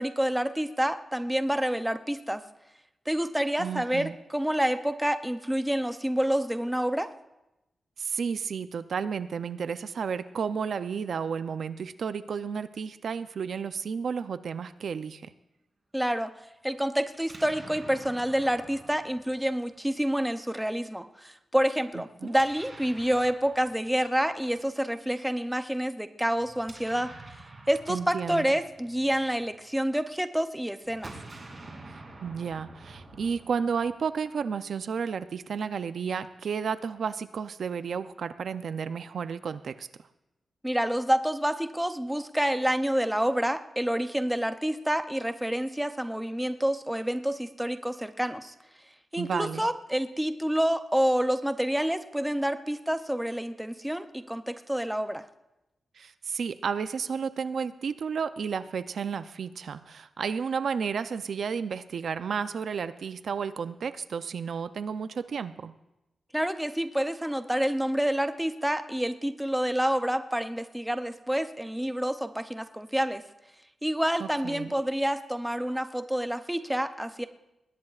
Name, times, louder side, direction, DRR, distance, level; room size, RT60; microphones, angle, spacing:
voice 1, 0.0-2.4 3.1-7.1 15.9-16.3 16.6-27.1 27.7-31.1 40.6-48.5 49.1-55.2 66.3-73.2 73.8-77.3, equal, 5° right, 9 dB, 0.5 m, -28 dB
voice 2, 3.6-4.2 8.0-15.3 22.2-22.3 27.9-28.5 31.9-39.9 49.2-49.6 56.0-65.7 74.2-74.7, right 6 dB, 60° right, 12 dB, 0.5 m, -32 dB
Explosion, 17.1-20.2 22.2-24.5 26.4-29.8 30.8-34.2, right 2 dB, 30° right, 2.7 m, -48 dB
20.5 x 18.5 x 2.4 m, 0.91 s
wide cardioid pair, 170°, 0 cm